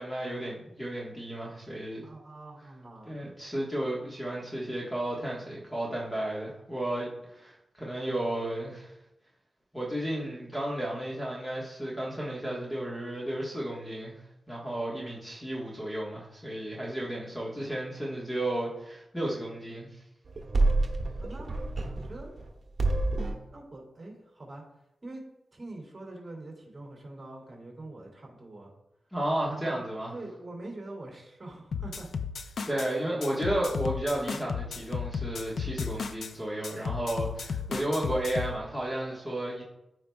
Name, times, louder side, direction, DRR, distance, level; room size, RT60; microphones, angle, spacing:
voice 1, 0.0-2.1 3.1-8.9 9.7-14.2 14.5-19.9 29.1-30.1 32.7-39.6, right 1 dB, 10° left, -5 dB, 1.4 m, -33 dB
voice 2, 2.0-3.1 21.2-21.5 22.0-22.3 23.5-28.7 29.5-29.8 30.1-32.2 36.9-37.2, right 2 dB, 30° right, -2 dB, 2.5 m, -44 dB
sound 1, 20.3-22.5 22.8-23.5, right 2 dB, 50° right, 1.1 m, -28 dB
sound 2, 31.7-32.9 33.2-36.3 36.6-38.6, left 6 dB, 85° left, 0.5 m, -34 dB
14.0 x 4.8 x 2.3 m, 0.87 s
wide cardioid pair, 110°, 0 cm